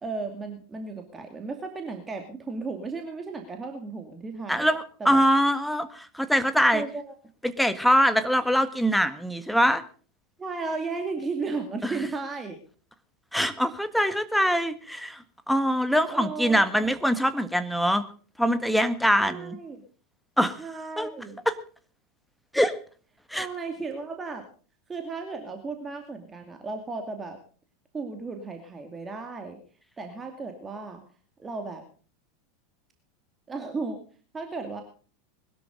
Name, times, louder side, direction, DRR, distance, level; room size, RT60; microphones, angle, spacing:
voice 1, 0.0-4.7 5.0-5.2 6.7-7.1 10.4-12.6 16.1-16.9 19.2-19.8 20.6-21.4 23.4-24.4 24.9-27.4 27.9-29.6 30.0-31.0 31.4-31.8 33.5-34.0 34.3-34.8, right 4 dB, 20° right, 4 dB, 2.4 m, -35 dB
voice 2, 4.5-6.8 7.4-9.8 11.8-12.0 13.3-18.0 18.4-19.6 20.4-20.6 21.0-21.1 21.5-21.6 22.5-22.8 23.3-23.5, equal, ahead, 10 dB, 1.6 m, -23 dB
21.0 x 12.5 x 3.9 m, 0.40 s
figure-of-eight pair, 85°, 0 cm